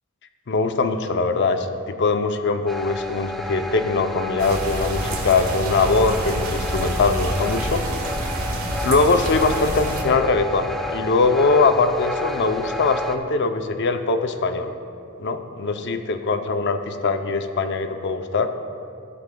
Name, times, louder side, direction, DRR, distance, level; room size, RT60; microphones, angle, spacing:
voice 1, 0.5-7.8 8.8-14.7 15.2-18.5, left 3 dB, 55° left, 7 dB, 0.6 m, -21 dB
sound 1, 2.7-13.2, left 1 dB, ahead, 0.4 m, -32 dB
sound 2, 4.4-10.0, right 1 dB, 85° right, 1.8 m, -28 dB
17.5 x 8.5 x 2.3 m, 2.6 s
head